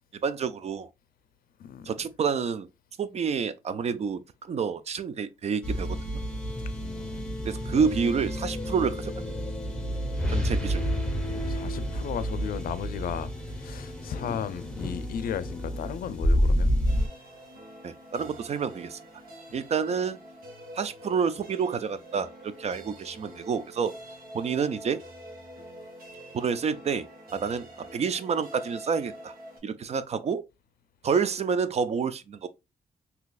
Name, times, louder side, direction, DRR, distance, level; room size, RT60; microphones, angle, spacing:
voice 1, 0.2-0.9 1.9-2.7 3.0-6.1 7.4-9.4 10.3-10.9 17.8-19.0 19.5-20.2 20.7-23.9 24.3-25.0 26.3-29.3 29.6-30.4 31.0-32.5, right 6 dB, 45° right, 0.4 m, -29 dB
voice 2, 1.6-1.9 6.8-7.2 10.2-10.5 11.3-16.7, left 8 dB, 75° left, 0.4 m, -35 dB
sound 1, 5.6-17.1, equal, 5° left, 1.0 m, -29 dB
sound 2, 16.9-29.6, equal, 80° right, 1.3 m, -46 dB
3.9 x 2.8 x 2.3 m
cardioid pair, 105°, 15 cm